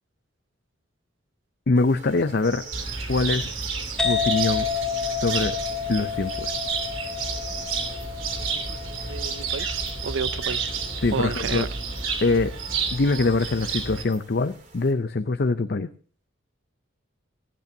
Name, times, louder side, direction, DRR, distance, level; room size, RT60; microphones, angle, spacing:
voice 1, 1.7-2.6 3.1-3.6 4.0-4.7 5.0-5.6 5.9-6.5 11.0-11.7 12.2-12.5 12.9-15.9, left 3 dB, 50° left, 0.6 m, -23 dB
sound 1, 1.7-14.9, right 4 dB, 40° right, 3.0 m, -45 dB
Cricket, 2.7-14.0, right 5 dB, 90° right, 3.0 m, -30 dB
sound 2, 4.0-11.4, left 7 dB, 5° left, 2.3 m, -30 dB
voice 2, 8.4-10.7 11.1-11.7, right 5 dB, 70° right, 0.5 m, -32 dB
25.5 x 8.6 x 2.8 m
head